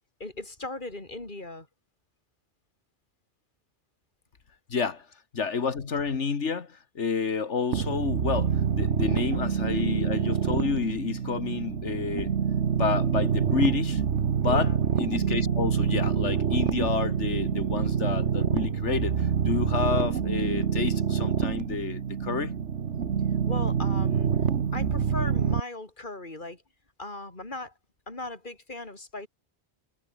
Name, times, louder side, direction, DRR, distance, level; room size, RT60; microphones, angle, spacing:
voice 1, 0.2-1.7 14.4-14.8 23.5-26.6 27.0-27.7 28.1-29.3, left 2 dB, 45° left, 4.6 m, -38 dB
voice 2, 4.7-5.1 5.3-12.3 12.7-14.0 14.4-22.5, left 5 dB, 90° left, 2.0 m, -29 dB
sound 1, 7.7-25.6, right 7 dB, 80° right, 1.5 m, -26 dB
omnidirectional pair, 1.2 m